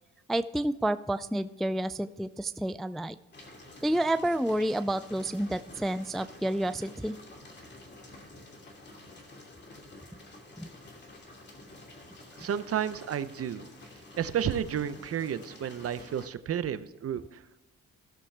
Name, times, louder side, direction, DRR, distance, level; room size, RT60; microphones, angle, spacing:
voice 1, 0.3-3.2 3.8-7.2 10.6-10.7, right 1 dB, ahead, 12 dB, 0.3 m, -29 dB
sound 1, 3.3-16.3, left 2 dB, 35° left, 2.6 m, -50 dB
voice 2, 12.4-13.7 14.2-17.4, right 9 dB, 50° right, 13 dB, 0.7 m, -32 dB
16.0 x 6.9 x 3.3 m, 1.0 s
cardioid pair, 90°, 30 cm